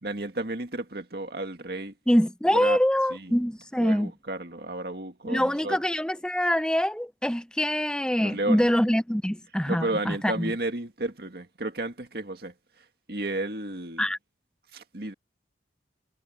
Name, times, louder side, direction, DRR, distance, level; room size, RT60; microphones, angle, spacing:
voice 1, 0.0-1.9 2.5-2.8 3.1-3.4 3.8-5.8 8.2-8.7 9.6-14.1 14.7-15.1, right 2 dB, 60° right, 2.1 m, -33 dB
voice 2, 2.1-4.1 5.2-10.5 14.0-14.2, equal, 5° left, 0.7 m, -24 dB
head